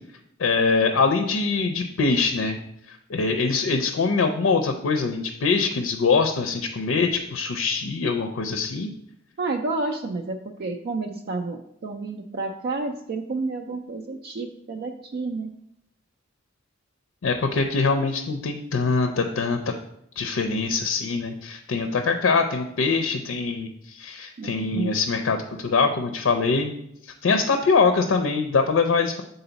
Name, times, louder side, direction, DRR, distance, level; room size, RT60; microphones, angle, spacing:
voice 1, 0.4-2.6 2.9-8.9 17.2-19.6 20.2-26.7 27.0-29.2, left 4 dB, 80° left, 6 dB, 0.5 m, -23 dB
voice 2, 9.4-15.5 24.4-25.0, right 3 dB, 50° right, 4 dB, 0.4 m, -30 dB
6.9 x 3.9 x 3.9 m, 0.77 s
head